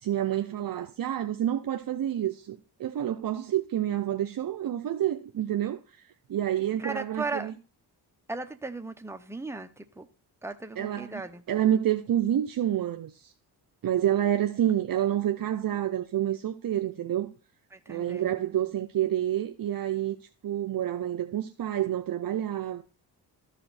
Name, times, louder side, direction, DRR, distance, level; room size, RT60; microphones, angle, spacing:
voice 1, 0.0-7.5 10.8-13.3 13.8-17.3 17.9-20.2 20.4-22.8, right 11 dB, 55° right, 0.7 m, -28 dB
voice 2, 6.8-7.5 8.3-10.1 10.4-11.4 17.7-18.4, right 3 dB, 5° right, 0.9 m, -36 dB
13.5 x 5.0 x 4.2 m
cardioid pair, 80°, 42 cm